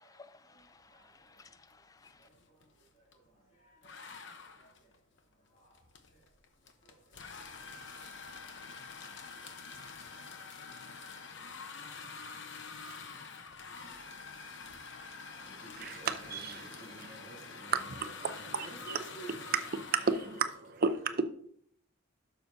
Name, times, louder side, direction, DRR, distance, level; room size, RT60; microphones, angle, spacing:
voice 1, 0.0-2.3, left 4 dB, 15° left, 0.4 m, -58 dB
sound 1, 1.4-1.7 2.0-3.3 3.8-20.4, left 5 dB, 55° left, 0.9 m, -47 dB
voice 2, 3.1-4.2 4.6-4.7 5.5-5.8 6.8-7.3 9.0-9.1 9.8-9.9 10.1-10.6 10.9-11.3 12.1-12.2 12.8-13.3 13.8-13.9 15.1-17.7 18.0-19.3 20.2-20.3, right 2 dB, 35° left, 2.7 m, -54 dB
voice 3, 15.8-17.2 17.7-19.0 19.5-21.2, right 5 dB, 45° right, 0.6 m, -33 dB
11.0 x 6.7 x 2.7 m
head